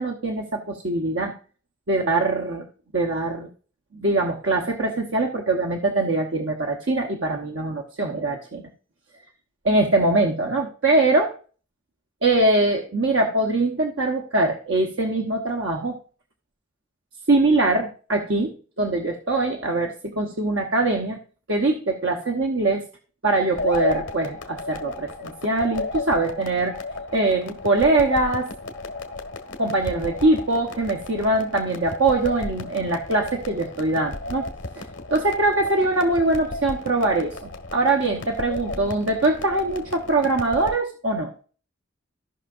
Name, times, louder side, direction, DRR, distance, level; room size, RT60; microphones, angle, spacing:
voice 1, 0.0-1.3 1.9-2.6 2.9-3.5 3.9-8.7 9.6-11.3 12.2-16.0 17.3-21.2 21.5-22.8 23.2-26.7 27.1-28.5 29.6-34.4 34.8-34.9 35.1-41.3, right 2 dB, 75° right, 1 dB, 1.1 m, -22 dB
sound 1, 23.5-40.8, left 2 dB, 75° left, 1.5 m, -33 dB
16.5 x 5.8 x 2.5 m, 0.40 s
head